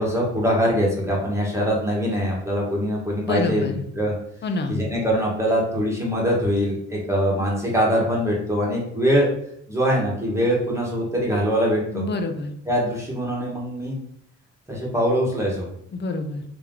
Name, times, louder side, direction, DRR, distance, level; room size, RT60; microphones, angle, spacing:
voice 1, 0.0-3.6 3.9-4.1 4.7-9.3 9.7-12.0 12.7-14.0 14.7-15.7, equal, 10° right, -3 dB, 1.5 m, -23 dB
voice 2, 3.2-3.8 4.4-4.8 11.9-12.5 15.9-16.4, left 3 dB, 35° left, 6 dB, 0.6 m, -27 dB
3.3 x 2.9 x 3.7 m, 0.70 s
cardioid pair, 90°, 30 cm